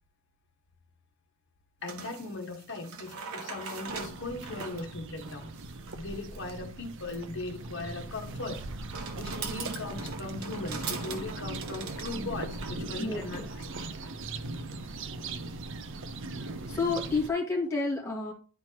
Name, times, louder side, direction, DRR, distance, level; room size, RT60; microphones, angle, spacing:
voice 1, 1.8-5.5 5.9-8.6 9.1-13.6, left 3 dB, 60° left, 1.4 m, -39 dB
sound 1, 1.8-14.2, right 5 dB, 85° right, 1.2 m, -42 dB
sound 2, 3.9-17.3, right 2 dB, 60° right, 0.7 m, -40 dB
voice 2, 13.0-13.5 16.4-18.3, left 3 dB, 15° left, 2.2 m, -30 dB
11.0 x 4.4 x 2.9 m
head